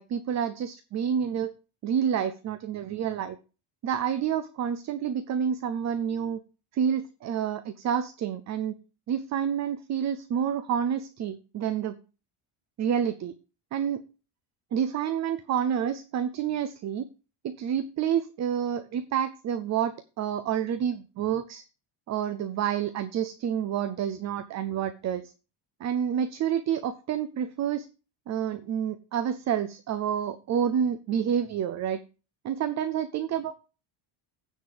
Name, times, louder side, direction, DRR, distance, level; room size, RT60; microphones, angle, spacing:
voice 1, 0.0-1.5 1.8-3.4 3.8-6.4 6.7-8.8 9.1-12.0 12.8-13.3 13.7-14.0 14.7-17.1 17.4-21.6 22.1-25.3 25.8-27.9 28.3-32.0 32.4-33.5, right 8 dB, 35° right, 12 dB, 0.6 m, -28 dB
9.5 x 4.3 x 6.6 m, 0.32 s
cardioid pair, 160°, 50 cm